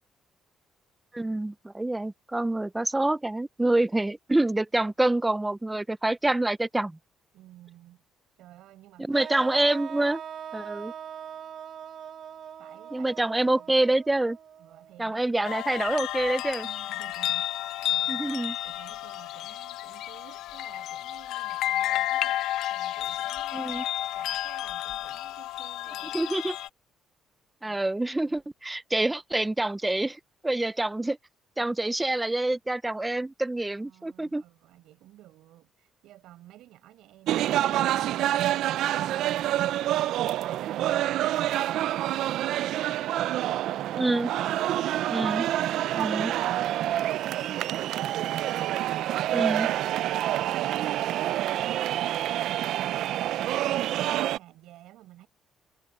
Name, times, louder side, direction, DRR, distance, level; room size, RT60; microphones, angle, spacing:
voice 1, 1.1-7.0 9.1-10.2 10.5-10.9 12.9-14.4 15.0-16.7 18.1-18.5 23.5-23.8 26.1-26.5 27.6-31.2 31.6-34.4 44.0-44.3 45.1-45.5 45.9-46.3 49.3-49.7, right 2 dB, 10° right, 0.5 m, -26 dB
voice 2, 7.3-8.0 8.4-9.3 12.6-13.7 14.6-15.5 16.6-18.3 18.6-26.4 27.6-27.8 28.2-28.4 30.6-30.7 33.7-44.2 54.2-55.3, right 14 dB, 85° right, 5.0 m, -53 dB
sound 1, 9.1-15.2, right 8 dB, 40° right, 0.9 m, -41 dB
sound 2, 15.4-26.7, left 13 dB, 75° left, 0.7 m, -31 dB
sound 3, 37.3-54.4, right 13 dB, 65° right, 0.4 m, -27 dB
cardioid pair, 170°, 0 cm